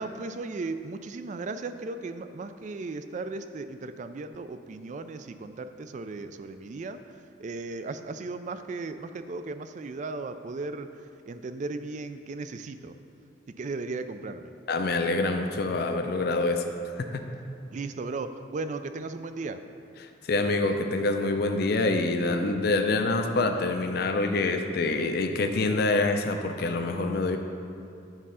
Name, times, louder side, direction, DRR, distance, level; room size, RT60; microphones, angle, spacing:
voice 1, 0.0-13.0 13.5-14.5 17.7-19.6, right 3 dB, 40° right, 10 dB, 0.3 m, -36 dB
voice 2, 14.7-16.6 17.0-17.2 20.3-27.4, left 2 dB, 60° left, 5 dB, 0.5 m, -26 dB
8.9 x 3.7 x 5.5 m, 2.6 s
head